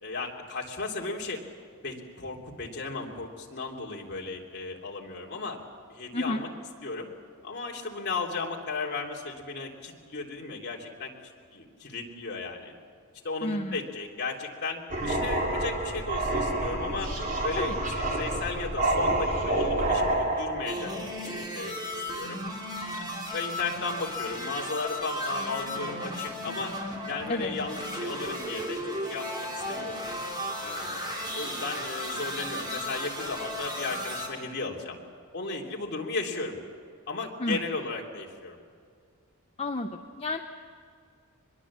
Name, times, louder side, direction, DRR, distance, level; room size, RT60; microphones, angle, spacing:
voice 1, 0.0-1.4 1.8-5.6 5.9-6.5 6.8-7.1 7.4-11.1 11.5-12.7 13.2-17.1 17.4-20.9 21.2-21.7 22.1-22.4 23.3-26.7 27.1-30.0 30.6-35.0 35.3-36.6 37.1-38.6, left 3 dB, 50° left, -1 dB, 3.1 m, -35 dB
voice 2, 13.4-13.8 17.6-17.8 27.3-27.5 37.4-37.6 39.6-40.4, left 1 dB, 25° left, 4 dB, 0.8 m, -31 dB
sound 1, 14.9-20.9, right 1 dB, 40° right, 3.5 m, -28 dB
sound 2, 20.7-34.3, equal, 20° right, 3.8 m, -35 dB
24.5 x 21.5 x 7.4 m, 2.2 s
head